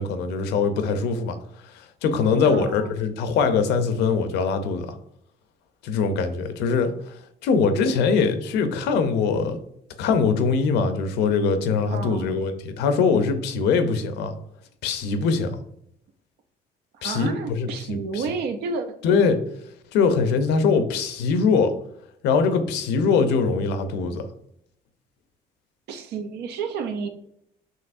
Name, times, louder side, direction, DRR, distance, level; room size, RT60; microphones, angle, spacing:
voice 1, 0.0-1.4 2.0-5.0 5.8-6.9 7.4-9.6 10.0-14.3 14.8-15.6 17.0-18.2 19.0-19.4 19.9-21.7 22.2-24.3, left 5 dB, 85° left, 8 dB, 0.6 m, -22 dB
voice 2, 2.4-2.9 11.9-12.3 16.9-19.0 25.9-27.1, right 5 dB, 75° right, 8 dB, 0.6 m, -31 dB
5.5 x 3.0 x 2.5 m, 0.73 s
cardioid pair, 110°, 17 cm